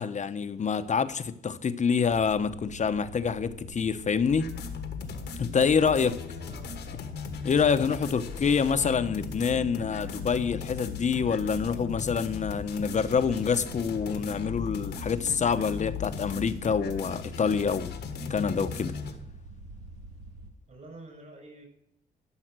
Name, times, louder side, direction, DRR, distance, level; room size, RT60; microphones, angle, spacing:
voice 1, 0.0-4.5 5.4-6.1 7.4-17.9 18.3-18.9, left 6 dB, 45° left, 11 dB, 0.9 m, -26 dB
sound 1, 2.1-20.5, right 2 dB, 65° right, 1.5 m, -46 dB
sound 2, 4.3-19.1, left 6 dB, 80° left, 1.5 m, -38 dB
voice 2, 5.7-6.7 7.5-9.2 20.7-21.6, right 2 dB, 45° right, 2 dB, 5.8 m, -50 dB
12.5 x 5.8 x 7.5 m, 0.76 s
cardioid pair, 80°, 17 cm